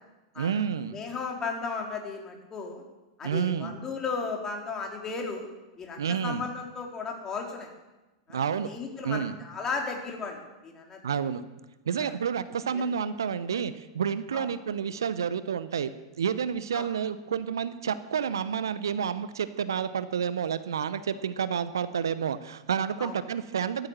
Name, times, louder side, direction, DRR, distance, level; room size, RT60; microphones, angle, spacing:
voice 1, 0.4-1.0 3.2-3.7 6.0-6.4 8.3-8.7 9.0-9.3 11.0-11.4 11.9-15.9 16.2-23.9, right 7 dB, 70° right, 14 dB, 0.9 m, -29 dB
voice 2, 0.9-2.8 3.2-5.5 5.8-7.7 8.3-11.0 12.0-12.1 12.7-12.9 13.5-13.6 14.3-14.5 16.7-16.9 23.0-23.2, left 4 dB, 25° left, 1 dB, 4.0 m, -35 dB
14.5 x 13.5 x 7.4 m, 1.1 s
figure-of-eight pair, 95°, 2 cm